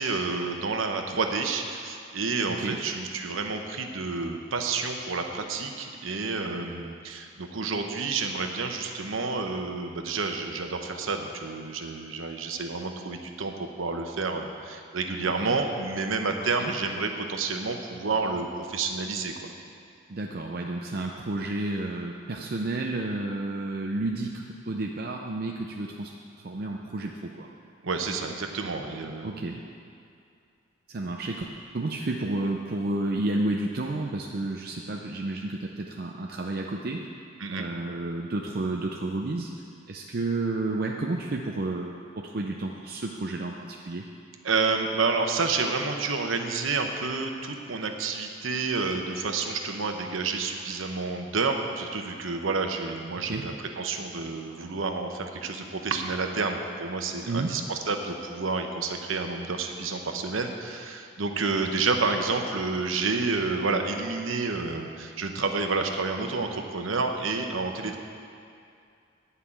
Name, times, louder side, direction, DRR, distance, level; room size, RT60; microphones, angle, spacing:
voice 1, 0.0-19.5 27.8-29.4 37.4-37.7 44.4-68.0, right 4 dB, 80° right, 4 dB, 0.9 m, -29 dB
voice 2, 2.5-2.8 15.4-15.6 16.6-16.7 20.1-26.1 26.4-27.5 29.2-29.6 30.9-31.5 31.7-37.1 37.5-39.5 39.9-44.1 53.1-53.5 57.3-57.6, right 2 dB, 50° right, 1 dB, 0.5 m, -31 dB
10.0 x 5.6 x 8.5 m, 2.4 s
head